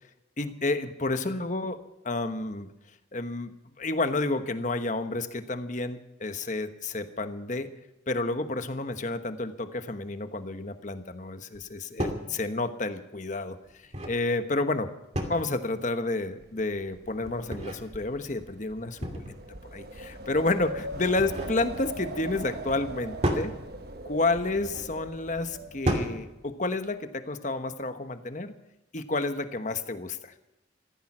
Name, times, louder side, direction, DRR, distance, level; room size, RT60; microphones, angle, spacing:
voice 1, 0.4-2.7 3.1-3.5 3.8-7.7 8.1-13.6 14.1-14.9 15.3-19.3 19.7-23.5 24.0-28.5 28.9-30.3, left 2 dB, 40° left, 9 dB, 1.2 m, -30 dB
sound 1, 11.5-11.7 12.0-12.3 13.6-14.2 15.1-15.6 17.2-17.8 19.0-19.5 20.9-21.6 23.2-23.5 24.6-24.9 25.8-26.2, equal, 35° right, 2.5 m, -31 dB
Wind, 16.4-26.5, right 1 dB, 55° right, 1.3 m, -41 dB
15.5 x 14.0 x 6.2 m, 0.93 s
head